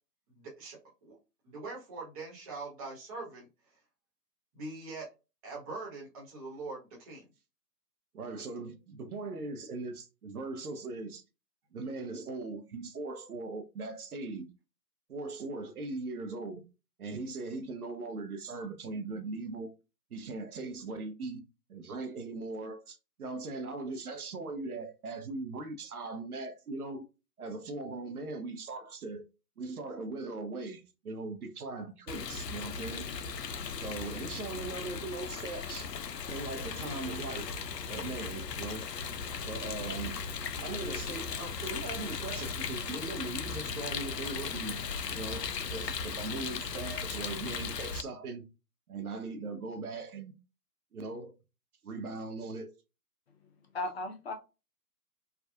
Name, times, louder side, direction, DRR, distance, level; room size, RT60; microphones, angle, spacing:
voice 1, 0.3-1.2 1.4-3.5 4.5-5.1 5.4-7.3, right 3 dB, 25° right, 1.1 m, -42 dB
voice 2, 8.1-11.2 11.7-14.5 15.1-16.6 17.0-19.7 20.1-21.4 21.7-27.1 27.4-29.3 29.6-33.1 33.8-35.9 36.3-37.5 37.9-38.9 39.4-40.2 40.6-44.8 45.1-48.5 48.9-50.3 50.9-51.3 51.8-52.7, right 3 dB, 65° right, 0.7 m, -39 dB
Rain, 32.1-48.0, left 5 dB, 85° left, 0.5 m, -37 dB
voice 3, 53.4-54.3, left 2 dB, 40° left, 0.7 m, -37 dB
3.4 x 2.4 x 2.3 m
figure-of-eight pair, 130°, 48 cm